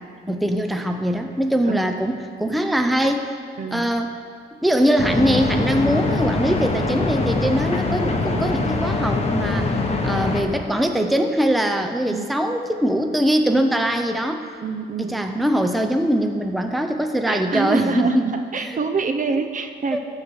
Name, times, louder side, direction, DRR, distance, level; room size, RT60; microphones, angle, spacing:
voice 1, 0.2-3.3 3.7-4.1 4.6-9.8 10.0-14.5 15.0-18.3 18.5-18.7 19.9-20.0, equal, ahead, 5 dB, 0.7 m, -22 dB
voice 2, 3.6-3.9 12.1-12.3 14.6-15.2 17.3-20.0, right 4 dB, 40° right, 7 dB, 0.8 m, -26 dB
sound 1, 5.0-10.4, left 3 dB, 30° left, 1.4 m, -23 dB
14.0 x 4.7 x 6.8 m, 2.1 s
cardioid pair, 90°, 20 cm